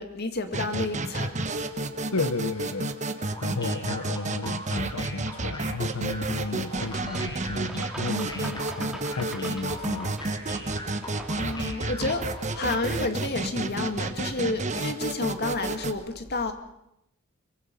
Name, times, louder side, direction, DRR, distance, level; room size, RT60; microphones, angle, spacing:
voice 1, 0.0-1.5 11.3-16.5, left 2 dB, 50° left, 7 dB, 2.2 m, -30 dB
sound 1, 0.5-15.9, right 2 dB, 35° right, 1.3 m, -31 dB
voice 2, 2.1-10.2, left 3 dB, 75° left, 11 dB, 0.8 m, -33 dB
sound 2, 3.3-12.5, left 1 dB, 20° left, 3.1 m, -41 dB
sound 3, 6.7-13.1, right 1 dB, 5° right, 2.3 m, -42 dB
24.0 x 23.5 x 5.5 m, 0.83 s
head